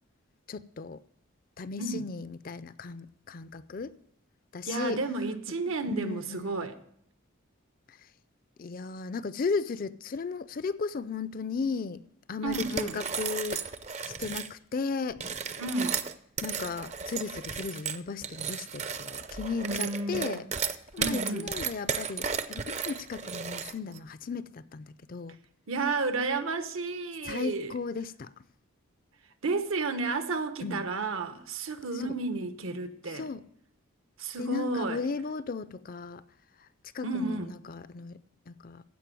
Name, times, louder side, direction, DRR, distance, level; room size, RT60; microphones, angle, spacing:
voice 1, 0.5-1.0 1.6-4.0 4.5-5.0 5.7-6.6 7.9-8.0 8.6-12.0 12.3-13.6 14.0-15.2 16.4-20.5 20.9-25.4 27.2-28.3 30.6-30.8 31.9-32.2 33.1-33.4 34.4-36.2 36.9-38.2 38.5-38.8, left 4 dB, 45° left, 0.4 m, -35 dB
voice 2, 4.6-6.8 12.4-13.0 15.6-16.0 19.6-20.5 21.0-21.5 25.7-27.7 29.4-33.3 34.2-35.0 37.0-37.5, right 3 dB, 75° right, 1.0 m, -32 dB
sound 1, 12.5-14.5 15.1-24.0, right 6 dB, 35° right, 0.5 m, -34 dB
15.5 x 5.3 x 7.6 m
head